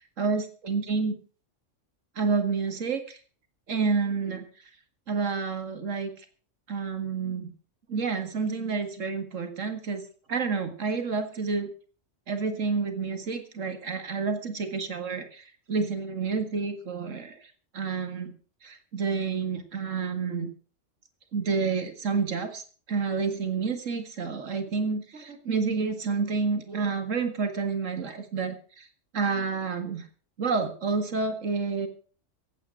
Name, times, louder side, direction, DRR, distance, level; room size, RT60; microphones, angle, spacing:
voice 1, 0.2-1.2 2.2-3.2 3.7-4.4 5.1-6.1 6.7-7.5 7.9-10.0 10.3-11.7 12.3-17.4 17.7-18.3 18.6-20.5 21.3-22.6 22.9-28.8 29.1-30.1 30.4-31.9, right 4 dB, 80° right, 7 dB, 2.3 m, -29 dB
15.5 x 9.0 x 6.3 m, 0.41 s
omnidirectional pair, 1.3 m